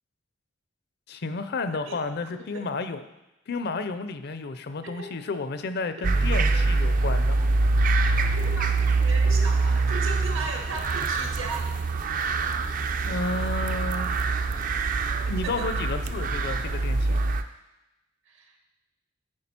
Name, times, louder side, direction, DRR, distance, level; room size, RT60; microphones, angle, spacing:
voice 1, 1.1-3.0 3.5-7.4 13.0-14.1 15.2-17.2, left 3 dB, 55° left, 10 dB, 0.5 m, -32 dB
voice 2, 1.8-2.7 4.8-5.1 8.2-11.7 15.4-15.7 18.3-18.6, right 3 dB, 75° right, 3 dB, 1.3 m, -37 dB
sound 1, 6.0-17.4, right 3 dB, 40° right, 0.4 m, -24 dB
9.6 x 4.8 x 4.3 m, 0.95 s
head